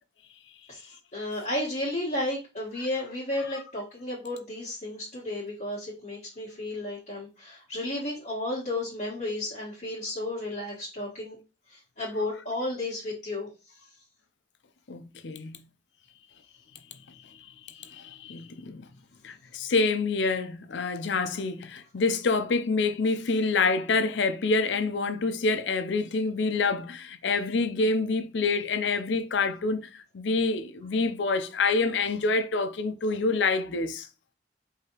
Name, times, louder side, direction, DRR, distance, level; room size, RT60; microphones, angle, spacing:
voice 1, 0.7-11.4 11.7-13.5, left 1 dB, 40° left, 1.3 m, -33 dB
voice 2, 14.9-15.6 17.7-18.9 19.2-34.1, left 3 dB, 80° left, 0.5 m, -27 dB
4.8 x 2.8 x 2.9 m
head